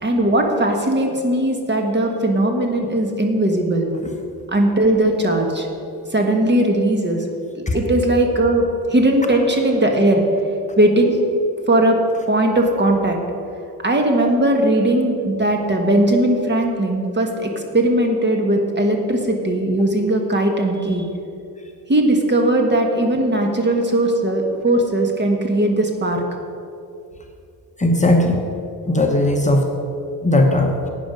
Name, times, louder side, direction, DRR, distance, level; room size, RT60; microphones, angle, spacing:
voice 1, 0.0-3.9 4.5-5.7 6.1-7.2 7.5-10.2 10.8-11.3 11.7-12.0 12.3-13.2 13.8-21.0 21.9-26.2, right 1 dB, 30° right, 2 dB, 1.4 m, -18 dB
voice 2, 27.8-28.4 28.9-29.7 30.2-30.9, left 1 dB, 20° left, 2 dB, 1.1 m, -17 dB
11.0 x 9.0 x 5.2 m, 2.6 s
cardioid pair, 120°, 38 cm